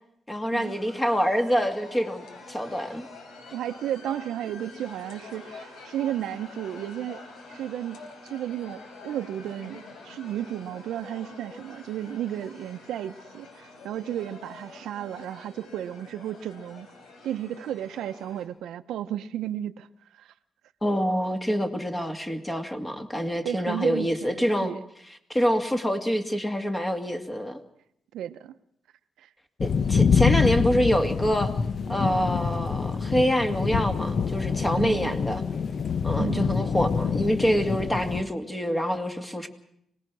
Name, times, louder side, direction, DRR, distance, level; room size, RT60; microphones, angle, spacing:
voice 1, 0.3-3.1 20.8-24.7 25.3-27.6 29.6-31.5 31.9-35.4 36.0-39.5, equal, 15° left, 2.2 m, -26 dB
sound 1, 0.6-18.5, left 3 dB, 75° left, 4.2 m, -46 dB
voice 2, 3.5-7.2 7.5-16.9 17.2-19.9 20.1-20.3 23.4-24.8 28.1-28.5 29.2-29.3 34.8-35.1 36.2-36.6, right 11 dB, 90° right, 0.9 m, -33 dB
sound 2, 29.6-38.2, left 6 dB, 45° left, 0.9 m, -26 dB
25.0 x 19.0 x 6.3 m
cardioid pair, 110°, 0 cm